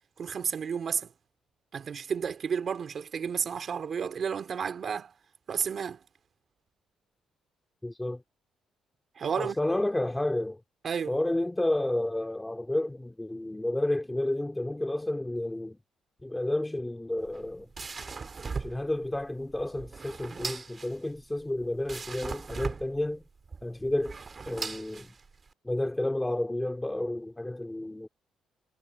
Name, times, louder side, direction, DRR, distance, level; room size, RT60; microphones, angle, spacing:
voice 1, 0.2-1.1 1.7-5.1 5.5-6.0 9.2-9.6 10.8-11.2, right 7 dB, 50° right, 2.5 m, -31 dB
voice 2, 7.8-8.2 9.4-10.6 11.1-15.8 16.2-17.7 18.6-23.2 23.6-24.2 24.5-25.1 25.6-28.1, left 1 dB, 10° left, 2.1 m, -31 dB
sound 1, 17.2-25.5, right 4 dB, 35° right, 1.7 m, -39 dB
cardioid pair, 90°, 0 cm